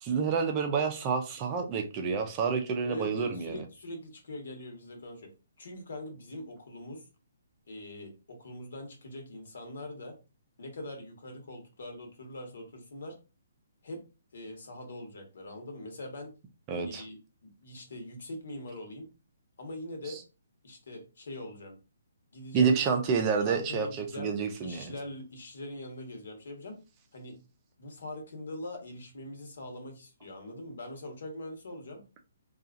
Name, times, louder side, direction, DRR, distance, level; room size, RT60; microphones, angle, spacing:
voice 1, 0.0-3.6 16.7-17.0 22.5-24.9, right 6 dB, 25° right, 0.5 m, -28 dB
voice 2, 2.8-5.3 5.6-7.1 7.7-10.1 10.6-13.1 13.8-14.0 14.3-16.3 16.8-17.2 17.4-19.1 19.6-20.2 20.6-21.7 22.3-22.8 23.4-24.3 24.6-26.8 27.1-27.4 27.8-32.0, left 1 dB, 70° left, 1.1 m, -42 dB
2.8 x 2.4 x 2.4 m
hypercardioid pair, 160°, 0 cm